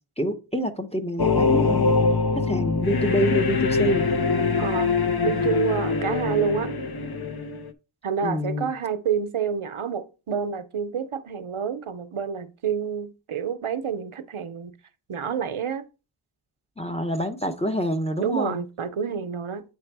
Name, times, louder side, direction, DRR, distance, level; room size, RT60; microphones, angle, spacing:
voice 1, 0.2-1.9 2.4-4.0 8.2-8.7 16.8-18.6, equal, 15° left, 0.9 m, -27 dB
sound 1, 1.2-7.7, left 4 dB, 50° left, 0.7 m, -23 dB
voice 2, 4.6-4.9 5.2-6.7 8.0-14.7 15.1-15.8 18.2-19.6, right 7 dB, 90° right, 0.7 m, -28 dB
8.5 x 3.4 x 4.7 m
wide cardioid pair, 45°, 48 cm